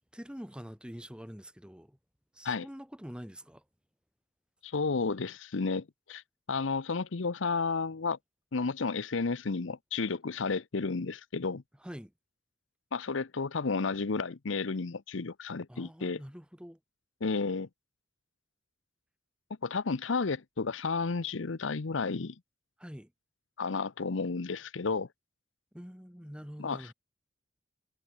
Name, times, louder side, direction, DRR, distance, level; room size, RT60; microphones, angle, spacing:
voice 1, 0.1-2.0 2.3-3.6 11.8-12.1 15.7-16.8 22.8-23.1 25.7-26.9, equal, 5° right, 2.8 m, -45 dB
voice 2, 4.6-6.2 6.5-8.2 8.5-11.6 12.9-16.2 17.2-17.7 19.6-22.4 23.6-25.1 26.6-26.9, left 4 dB, 75° left, 0.8 m, -32 dB
head